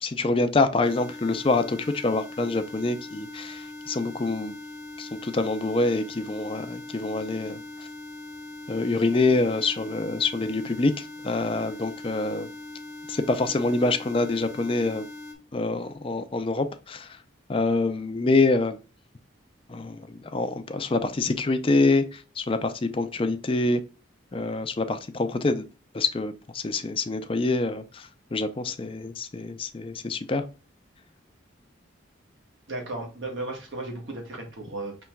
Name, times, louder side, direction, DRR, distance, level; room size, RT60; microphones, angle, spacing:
voice 1, 0.0-4.5 5.0-7.9 8.7-12.5 13.1-15.1 15.5-17.2 17.5-18.8 19.7-23.8 24.3-25.7 25.9-30.5, left 3 dB, 25° left, 0.4 m, -26 dB
sound 1, 0.8-15.3, left 2 dB, 15° right, 0.9 m, -41 dB
voice 2, 32.7-35.0, right 2 dB, 70° right, 1.2 m, -35 dB
5.7 x 3.0 x 2.2 m
head